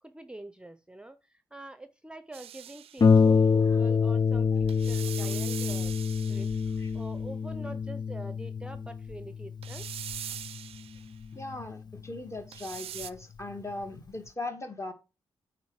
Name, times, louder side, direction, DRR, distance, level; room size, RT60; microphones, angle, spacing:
voice 1, 0.0-6.0 6.3-9.9, right 2 dB, 10° right, 0.7 m, -45 dB
sound 1, 2.3-3.2 4.7-6.9 9.6-11.1 12.5-13.1, right 11 dB, 80° right, 0.4 m, -42 dB
Harp, 3.0-12.2 13.0-13.1 13.6-13.7, left 5 dB, 45° left, 0.5 m, -27 dB
voice 2, 4.9-5.3 6.8-6.9 7.6-7.7 11.3-14.9, left 2 dB, 30° left, 1.8 m, -39 dB
8.5 x 4.2 x 4.8 m
supercardioid pair, 50°, 10 cm